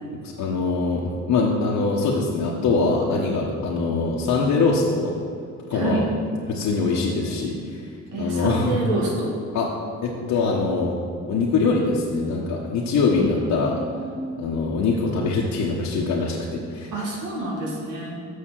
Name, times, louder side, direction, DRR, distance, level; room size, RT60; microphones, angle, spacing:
voice 1, 0.2-5.2 5.7-6.1 6.5-7.8 8.1-8.8 9.5-9.7 10.0-11.0 11.3-13.8 14.4-16.9, left 4 dB, 75° left, -3 dB, 1.2 m, -23 dB
voice 2, 5.7-6.0 8.1-9.3 13.1-14.3 16.9-18.2, right 2 dB, 90° right, -3 dB, 2.1 m, -28 dB
6.6 x 6.6 x 7.4 m, 2.4 s
cardioid pair, 90°, 30 cm